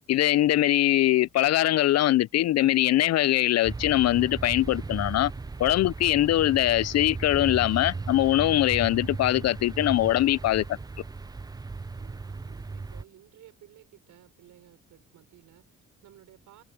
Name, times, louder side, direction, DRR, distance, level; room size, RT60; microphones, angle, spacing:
voice 1, 0.1-5.3 5.6-10.8, left 14 dB, 60° left, 0.4 m, -22 dB
sound 1, 3.6-13.0, right 3 dB, 15° right, 0.5 m, -36 dB
voice 2, 12.0-16.6, right 12 dB, 80° right, 4.3 m, -55 dB
cardioid pair, 90°, 30 cm